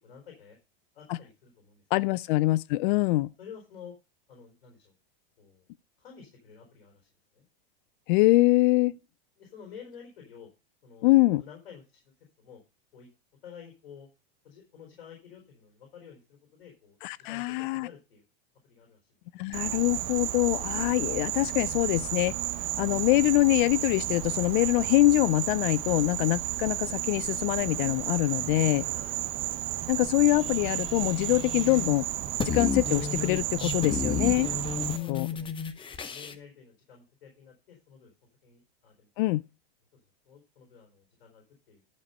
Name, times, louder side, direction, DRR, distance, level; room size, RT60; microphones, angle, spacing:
voice 1, 0.0-0.6 0.9-2.2 3.4-3.9 4.3-4.9 5.4-5.7 6.0-7.5 9.4-10.5 10.8-12.0 12.4-12.6 12.9-13.1 13.4-14.1 14.4-17.0 17.3-18.2 18.6-19.0 19.4-19.5 28.9-29.3 34.9-35.5 35.9-38.1 38.4-39.1 39.9-40.0 40.3-41.8, left 7 dB, 90° left, 4.0 m, -50 dB
voice 2, 1.9-3.3 8.1-9.0 11.0-11.4 17.0-17.9 19.3-22.3 22.8-28.9 29.9-32.1 32.4-34.5 35.1-35.3 39.2-39.4, left 19 dB, 60° left, 0.4 m, -24 dB
Insect, 19.5-35.0, right 14 dB, 45° right, 1.0 m, -33 dB
sound 1, 30.3-36.3, left 5 dB, 15° left, 0.8 m, -33 dB
11.5 x 5.1 x 5.4 m
supercardioid pair, 125°, 29 cm